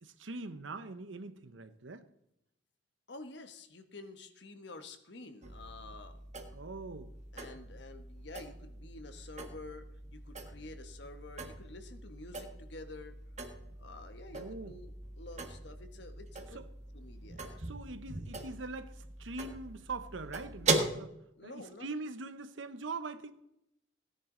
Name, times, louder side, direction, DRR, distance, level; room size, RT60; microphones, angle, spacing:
voice 1, 0.0-2.1 6.5-7.1 14.3-14.7 16.5-16.6 17.6-23.3, right 3 dB, 85° right, 11 dB, 1.0 m, -43 dB
voice 2, 3.1-6.2 7.3-13.2 13.8-16.6 16.9-17.6 21.3-21.9, left 2 dB, 65° left, 8 dB, 1.3 m, -49 dB
sound 1, 5.4-20.9, right 3 dB, 40° right, 1.5 m, -40 dB
17.0 x 10.0 x 3.9 m, 0.80 s
head